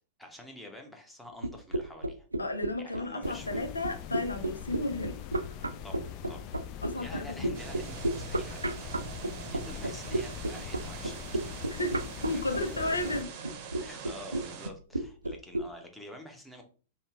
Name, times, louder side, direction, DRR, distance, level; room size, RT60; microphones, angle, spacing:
voice 1, 0.2-2.3 2.8-3.7 5.8-6.5 7.0-11.4 12.1-13.1 13.7-16.6, left 1 dB, 5° left, 0.9 m, -48 dB
sound 1, 1.4-15.6, right 1 dB, 85° right, 0.3 m, -32 dB
voice 2, 2.4-5.2 6.8-7.6 11.7-13.5, left 2 dB, 85° left, 0.6 m, -34 dB
sound 2, 3.2-13.2, left 10 dB, 40° left, 0.4 m, -43 dB
sound 3, 7.5-14.7, right 7 dB, 45° right, 0.7 m, -44 dB
5.3 x 2.2 x 2.4 m
figure-of-eight pair, 100°, 0 cm